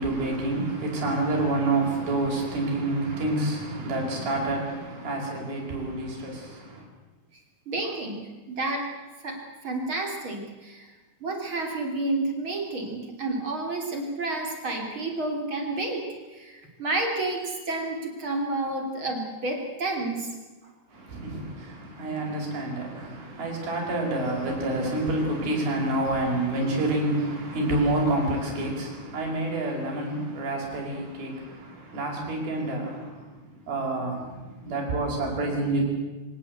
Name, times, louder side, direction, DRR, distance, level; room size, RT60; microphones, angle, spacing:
voice 1, 0.0-6.8 20.9-35.8, right 2 dB, 55° right, 7.2 m, -28 dB
voice 2, 7.7-8.9 9.2-10.9 11.2-20.3 20.6-20.7, right 2 dB, 30° right, 3.2 m, -30 dB
25.0 x 17.5 x 8.1 m
omnidirectional pair, 5.1 m